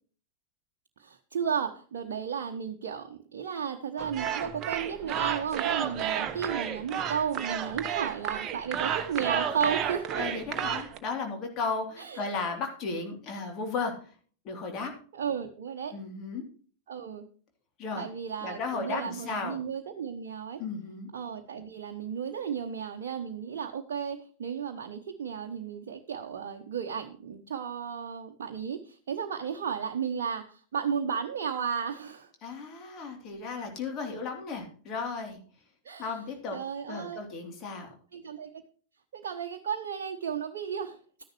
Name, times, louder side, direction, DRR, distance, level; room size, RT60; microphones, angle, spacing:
voice 1, 1.0-10.2 12.0-12.3 15.1-15.9 16.9-17.3 18.0-20.6 21.1-32.3 35.8-36.1 36.5-37.2 38.1-38.5 39.1-41.0, right 7 dB, 60° right, 4 dB, 1.0 m, -34 dB
sound 1, 4.0-11.0, right 8 dB, 30° right, 1.1 m, -32 dB
voice 2, 10.2-14.1 14.4-14.9 15.9-16.4 17.8-18.1 18.4-19.6 20.6-21.1 32.4-35.4 36.0-36.6 36.9-37.9, left 4 dB, 35° left, 3 dB, 3.2 m, -35 dB
13.0 x 10.5 x 3.1 m, 0.43 s
figure-of-eight pair, 90°, 0 cm